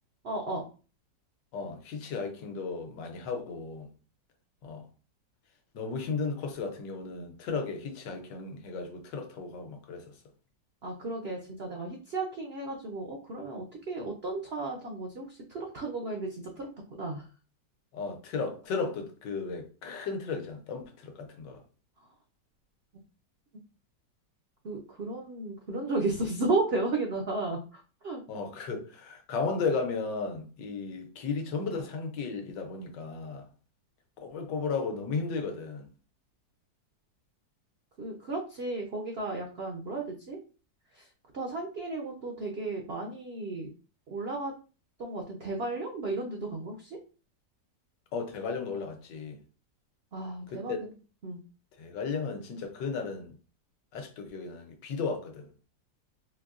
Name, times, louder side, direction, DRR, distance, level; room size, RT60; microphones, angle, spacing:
voice 1, 0.2-0.6 10.8-16.7 17.0-17.3 22.0-22.1 22.9-23.0 24.6-28.2 38.0-40.4 40.9-43.7 44.1-44.5 45.0-47.0 50.1-50.8 51.2-51.4, right 2 dB, 75° right, 0.5 m, -34 dB
voice 2, 1.5-3.9 4.6-4.9 5.7-10.2 17.9-21.6 28.3-33.5 34.2-35.9 48.1-49.4 50.5-50.8 51.8-53.3 53.9-55.5, left 4 dB, 75° left, 1.4 m, -35 dB
4.4 x 2.6 x 2.5 m
omnidirectional pair, 1.9 m